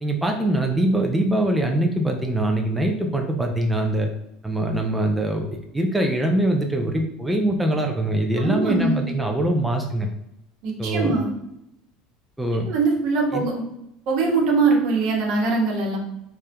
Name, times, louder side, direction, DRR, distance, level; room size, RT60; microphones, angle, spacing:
voice 1, 0.0-4.1 4.4-5.4 5.7-10.1 10.8-11.1 12.4-12.7 13.3-13.4, right 1 dB, 10° right, 2 dB, 0.5 m, -23 dB
voice 2, 8.4-9.0 10.6-11.3 12.7-13.6 14.1-16.0, right 3 dB, 65° right, 0 dB, 1.1 m, -22 dB
3.5 x 2.7 x 3.4 m, 0.81 s
hypercardioid pair, 85°, 0 cm